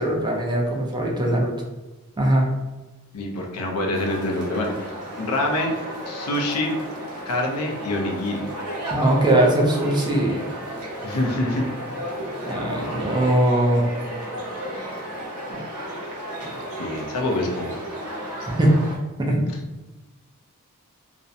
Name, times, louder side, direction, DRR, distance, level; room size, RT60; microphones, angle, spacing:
voice 1, 0.0-1.5 2.2-2.5 8.9-10.5 12.4-13.9 15.5-15.6 18.6-18.7 19.2-19.5, right 1 dB, 20° right, -1 dB, 0.4 m, -20 dB
voice 2, 3.1-4.9 5.2-5.7 6.1-6.8 7.3-8.5 11.0-11.7 16.8-18.3 19.5-19.6, left 1 dB, 85° left, 1 dB, 0.5 m, -26 dB
sound 1, 3.9-19.0, equal, 75° right, 0.8 m, -33 dB
2.5 x 2.1 x 2.6 m, 1.1 s
head